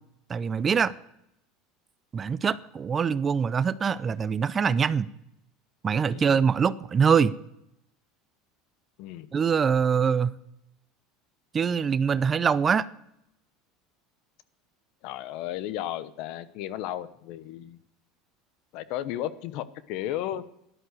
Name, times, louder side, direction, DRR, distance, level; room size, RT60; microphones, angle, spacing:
voice 1, 0.3-0.9 2.1-5.1 5.8-7.3 9.3-10.3 11.5-12.9, right 6 dB, 30° right, 0.5 m, -24 dB
voice 2, 15.0-17.8 18.7-20.5, left 12 dB, 65° left, 0.9 m, -34 dB
13.0 x 11.0 x 8.1 m
supercardioid pair, 110°, 0 cm